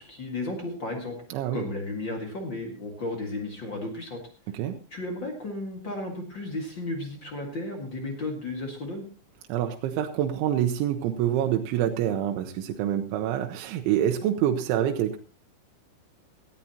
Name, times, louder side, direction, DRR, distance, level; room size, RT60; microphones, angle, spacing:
voice 1, 0.0-1.2 1.5-4.2 4.9-9.0, left 2 dB, 55° left, 2 dB, 1.2 m, -34 dB
voice 2, 1.3-1.6 4.5-4.8 9.5-15.2, right 11 dB, 85° right, 4 dB, 3.3 m, -26 dB
18.0 x 13.5 x 2.9 m, 0.37 s
omnidirectional pair, 5.3 m